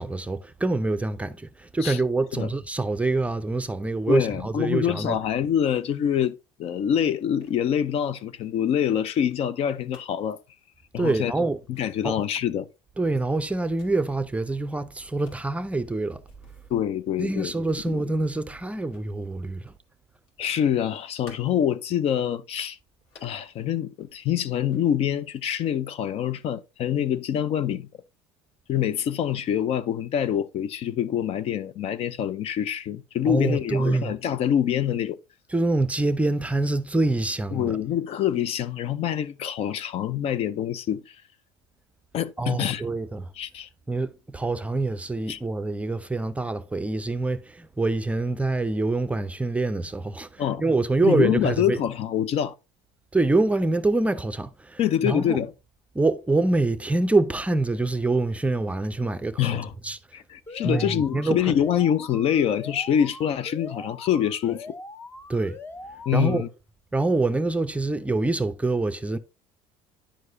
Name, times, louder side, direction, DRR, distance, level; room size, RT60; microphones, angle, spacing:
voice 1, 0.0-5.2 11.0-11.6 12.0-12.1 13.0-16.2 17.2-19.7 33.3-34.1 35.5-37.7 42.4-43.3 43.9-51.8 53.1-55.4 55.9-59.5 59.8-60.0 60.6-61.5 65.3-65.6 66.1-66.5 66.9-69.2, right 2 dB, 10° right, 0.6 m, -25 dB
voice 2, 4.1-10.4 10.9-11.3 11.7-12.7 16.7-17.5 17.9-18.0 20.4-22.8 23.2-27.9 28.7-35.2 37.5-41.2 42.1-42.8 43.4-43.7 45.3-45.4 50.4-50.6 51.0-52.5 54.8-55.5 59.4-59.7 60.1-64.7 66.1-66.5, left 9 dB, 50° left, 0.5 m, -25 dB
sound 1, 7.2-10.4 11.0-11.2 11.5-11.9 12.3-14.5 15.0-19.9 20.2-21.8 22.3-22.4 22.9-23.5 24.0-25.1, left 3 dB, 85° left, 2.4 m, -56 dB
Alarm, 60.5-66.5, left 2 dB, 20° left, 0.8 m, -42 dB
10.0 x 4.7 x 2.6 m
supercardioid pair, 95°, 13 cm